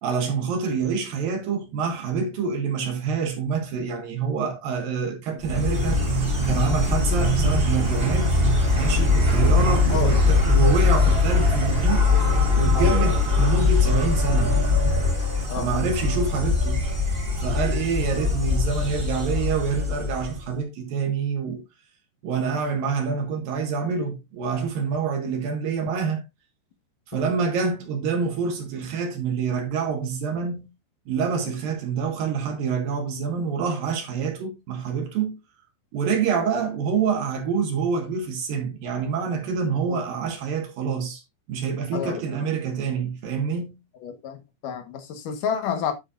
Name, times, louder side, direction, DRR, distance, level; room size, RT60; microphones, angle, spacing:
voice 1, 0.0-6.0 6.5-8.4 8.7-12.1 12.6-14.6 15.5-16.8 17.4-21.6 22.2-26.2 27.1-30.7 31.1-35.4 35.9-41.2 41.5-43.8, right 5 dB, 65° right, 2.5 m, -26 dB
Insect, 5.4-20.5, left 3 dB, 25° right, 1.2 m, -21 dB
voice 2, 9.4-10.2 10.6-10.8 12.7-13.2 15.5-15.7 39.8-40.0 41.9-42.4 44.0-45.9, left 7 dB, 75° left, 1.9 m, -30 dB
9.9 x 8.4 x 2.5 m
omnidirectional pair, 5.7 m